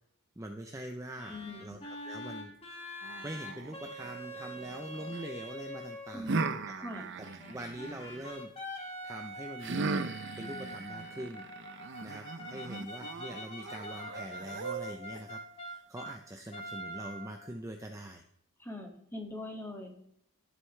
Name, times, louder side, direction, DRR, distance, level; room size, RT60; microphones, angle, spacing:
voice 1, 0.4-2.8 3.2-6.3 6.8-6.9 7.2-8.5 9.0-9.9 10.4-11.4 12.0-18.2, right 1 dB, 15° right, 4 dB, 0.7 m, -43 dB
sound 1, 1.2-6.3 7.2-16.2 16.5-17.6, equal, 25° left, 1.9 m, -44 dB
voice 2, 1.3-1.8 6.1-6.5 6.8-7.1 18.6-19.9, left 1 dB, 10° left, 0 dB, 2.1 m, -42 dB
sound 2, 3.0-5.2 6.3-8.3 9.6-15.2, right 4 dB, 55° right, 0.7 m, -38 dB
15.5 x 8.1 x 3.3 m, 0.70 s
head